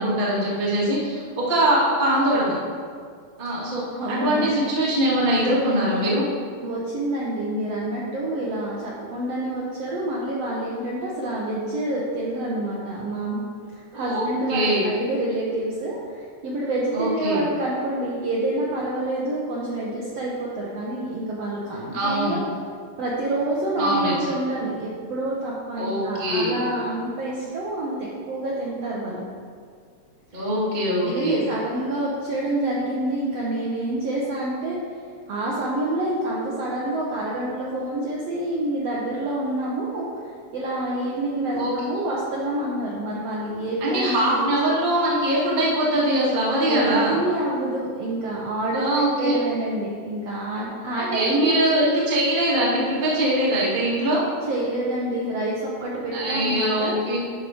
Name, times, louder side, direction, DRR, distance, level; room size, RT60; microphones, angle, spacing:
voice 1, 0.0-2.6 3.4-6.2 13.9-14.8 16.9-17.4 21.9-22.4 23.8-24.3 25.8-26.6 30.3-31.4 41.5-41.7 43.8-47.2 48.7-49.4 51.0-54.2 56.1-57.2, right 1 dB, 25° right, -6 dB, 1.2 m, -22 dB
voice 2, 4.0-4.6 6.6-13.4 13.7-22.4 23.0-29.2 31.0-34.8 35.3-44.5 46.6-51.6 54.4-56.9, right 1 dB, 65° right, -5 dB, 1.6 m, -27 dB
11.0 x 4.2 x 4.9 m, 2.1 s
omnidirectional pair, 3.8 m